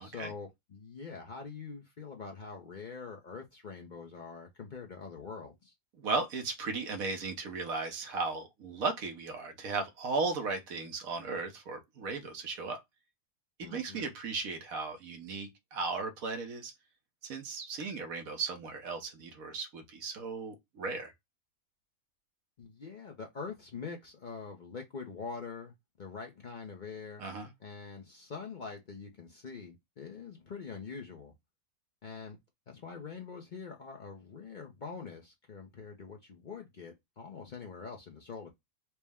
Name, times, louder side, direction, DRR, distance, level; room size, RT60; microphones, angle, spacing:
voice 1, 0.0-5.7 13.6-14.1 22.6-27.2 27.6-31.3 32.0-32.4 32.7-38.5, left 5 dB, 45° left, 0.6 m, -44 dB
voice 2, 6.0-12.8 13.6-16.7 17.2-21.1 27.2-27.5, right 4 dB, 80° right, 1.3 m, -36 dB
4.3 x 2.1 x 3.5 m
omnidirectional pair, 1.4 m